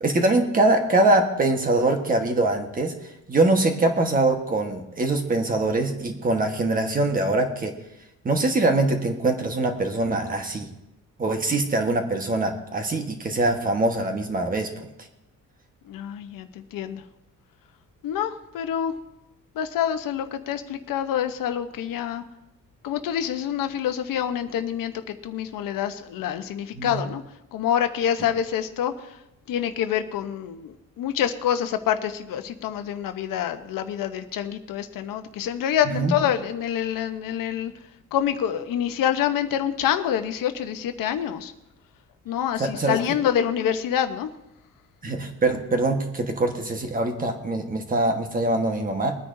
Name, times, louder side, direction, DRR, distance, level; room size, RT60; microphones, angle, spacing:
voice 1, 0.0-2.9 3.3-7.7 8.2-10.7 11.2-14.7 26.7-27.0 35.9-36.1 42.6-43.0 45.0-49.2, right 2 dB, 25° right, 4 dB, 1.4 m, -23 dB
voice 2, 15.8-17.0 18.0-18.9 19.5-22.2 22.8-24.9 25.2-27.2 27.5-29.1 29.5-37.7 38.1-41.5 42.3-44.3, left 9 dB, 90° left, 8 dB, 1.0 m, -26 dB
22.5 x 9.5 x 2.7 m, 0.91 s
cardioid pair, 155°, 32 cm